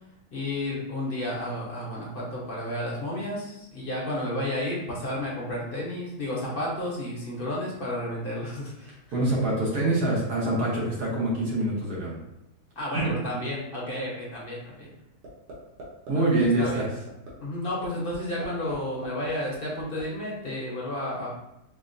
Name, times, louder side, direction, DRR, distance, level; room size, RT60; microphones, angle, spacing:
voice 1, 0.3-9.0 12.8-14.9 16.1-16.2 16.6-16.9 17.4-21.3, left 1 dB, 45° left, -5 dB, 0.8 m, -32 dB
voice 2, 9.1-12.1 16.1-16.9, right 1 dB, 70° right, -5 dB, 1.6 m, -25 dB
sound 1, 15.2-15.5 15.8-16.1 16.4-16.7 17.1-17.3 17.7-17.8 18.1-18.8 19.0-20.0, right 2 dB, 90° right, 1.5 m, -41 dB
4.9 x 2.1 x 2.5 m, 0.86 s
omnidirectional pair, 1.7 m